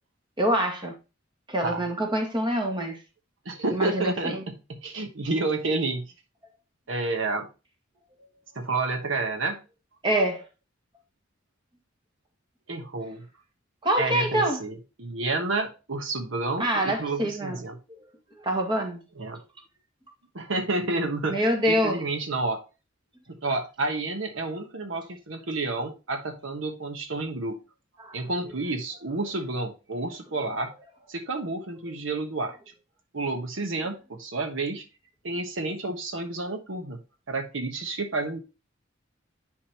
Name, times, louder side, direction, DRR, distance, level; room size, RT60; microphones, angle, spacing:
voice 1, 0.4-0.9 1.5-3.0 3.7-4.4 10.0-10.4 13.8-14.6 16.6-17.6 18.4-19.0 21.3-22.0 28.0-28.2, right 1 dB, 25° right, 2.0 m, -25 dB
voice 2, 3.4-6.1 6.9-7.5 8.5-9.6 12.7-13.3 14.0-17.8 19.2-19.4 20.3-22.6 23.3-27.6 28.1-30.7 31.1-32.6 33.1-34.8 35.2-37.0 37.3-38.4, right 3 dB, 70° right, 1.2 m, -30 dB
10.0 x 5.1 x 3.0 m
head